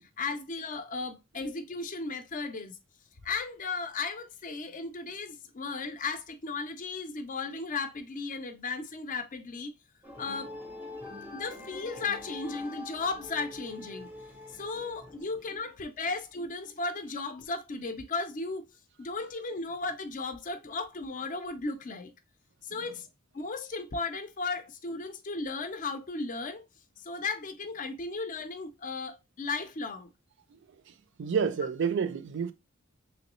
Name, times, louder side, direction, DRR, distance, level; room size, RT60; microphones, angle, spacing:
voice 1, 0.2-2.8 3.2-9.7 10.2-10.5 11.3-14.1 14.5-18.7 19.0-22.1 22.6-23.1 23.3-26.6 27.0-30.1, left 3 dB, 40° left, 0.5 m, -35 dB
sound 1, 10.0-15.6, left 2 dB, 10° right, 0.6 m, -44 dB
voice 2, 30.9-32.5, right 6 dB, 60° right, 0.4 m, -30 dB
3.1 x 3.0 x 3.0 m
head